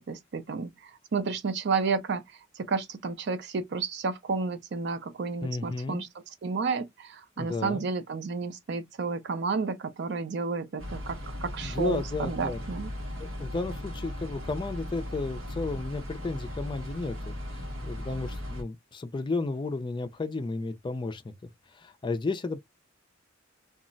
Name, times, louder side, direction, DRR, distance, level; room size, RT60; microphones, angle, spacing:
voice 1, 0.0-2.2 2.6-12.9, right 4 dB, 60° right, 0.5 m, -31 dB
voice 2, 5.4-6.1 7.4-7.8 11.6-12.6 13.2-17.3 17.8-21.3 21.8-22.6, left 3 dB, 25° left, 0.3 m, -33 dB
sound 1, 10.8-18.6, left 1 dB, 80° right, 0.9 m, -37 dB
2.3 x 2.0 x 3.8 m
head